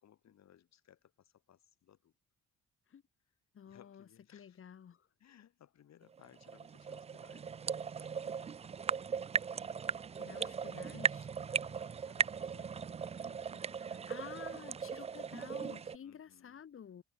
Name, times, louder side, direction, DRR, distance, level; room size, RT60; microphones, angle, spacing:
voice 1, 0.0-2.1 3.7-4.6 5.2-8.5 10.3-10.8 11.5-14.1 16.0-16.6, left 10 dB, 60° left, 2.6 m, -63 dB
voice 2, 3.5-5.1 10.1-11.3 13.9-17.0, left 8 dB, 45° left, 1.4 m, -51 dB
sound 1, 6.1-16.0, right 6 dB, 20° right, 0.3 m, -38 dB
cardioid pair, 90°, 30 cm